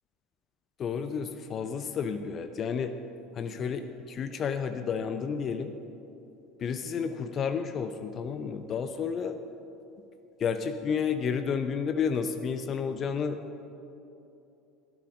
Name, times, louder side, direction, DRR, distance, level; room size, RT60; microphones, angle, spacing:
voice 1, 0.8-2.9 3.3-5.7 6.6-9.4 10.4-13.4, left 6 dB, 40° left, 9 dB, 0.6 m, -31 dB
13.0 x 11.0 x 5.3 m, 2.9 s
figure-of-eight pair, 70°, 0 cm